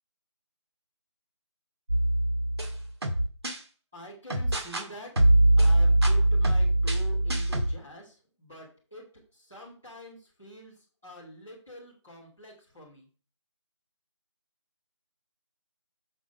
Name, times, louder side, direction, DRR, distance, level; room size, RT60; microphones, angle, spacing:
sound 1, 1.9-3.6 4.3-4.9 5.2-7.7, right 1 dB, 55° right, 1.8 m, -22 dB
voice 1, 3.9-5.3 5.6-9.1 9.3-10.7 11.0-13.1, equal, 5° right, -9 dB, 0.8 m, -46 dB
6.8 x 6.2 x 3.6 m, 0.37 s
figure-of-eight pair, 180°, 16 cm